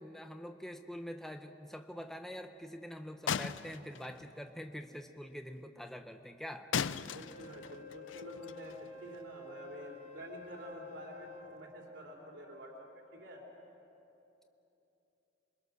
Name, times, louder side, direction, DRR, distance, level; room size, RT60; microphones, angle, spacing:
voice 1, 0.0-6.7, equal, ahead, 5 dB, 0.7 m, -45 dB
sound 1, 3.3-4.5 6.7-9.2, left 7 dB, 80° left, 0.5 m, -38 dB
voice 2, 7.1-13.4, equal, 70° right, -1 dB, 3.5 m, -49 dB
Wind instrument woodwind instrument, 7.2-11.6, left 4 dB, 40° left, 3.2 m, -50 dB
28.0 x 23.0 x 6.4 m, 3.0 s
head